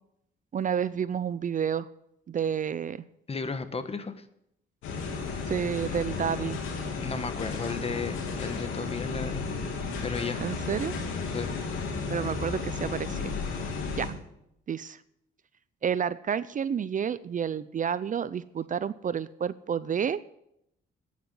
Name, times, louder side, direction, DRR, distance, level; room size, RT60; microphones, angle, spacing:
voice 1, 0.5-1.9 2.3-3.0 5.5-6.6 10.4-10.9 12.1-13.3 13.9-14.1 14.7-15.0 15.8-20.2, right 8 dB, 40° right, 16 dB, 0.5 m, -30 dB
voice 2, 3.3-4.2 7.0-9.4 10.0-10.4 11.3-11.5, left 4 dB, 30° left, 11 dB, 1.3 m, -34 dB
sound 1, 4.8-14.1, left 4 dB, 90° left, 3.0 m, -33 dB
9.5 x 9.2 x 9.1 m, 0.78 s
cardioid pair, 90°, 20 cm